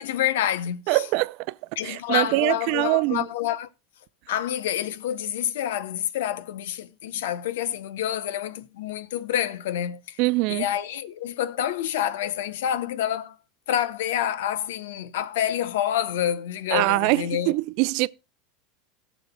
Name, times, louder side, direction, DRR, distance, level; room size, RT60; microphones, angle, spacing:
voice 1, 0.0-1.0 1.8-3.7 4.3-10.2 10.5-13.4 13.7-17.5, left 10 dB, 85° left, 0.8 m, -28 dB
voice 2, 0.9-1.6 1.8-3.3 10.2-10.7 16.7-18.1, right 22 dB, 60° right, 0.4 m, -23 dB
18.0 x 7.2 x 2.2 m
supercardioid pair, 120°, 0 cm